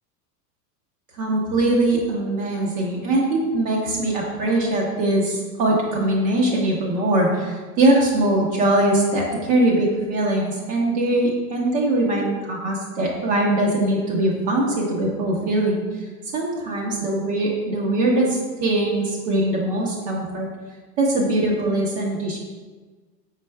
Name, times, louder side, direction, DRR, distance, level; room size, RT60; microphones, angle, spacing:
voice 1, 1.2-20.5 21.0-22.4, right 1 dB, 50° right, -3 dB, 1.0 m, -21 dB
5.0 x 4.5 x 2.2 m, 1.3 s
hypercardioid pair, 100°, 49 cm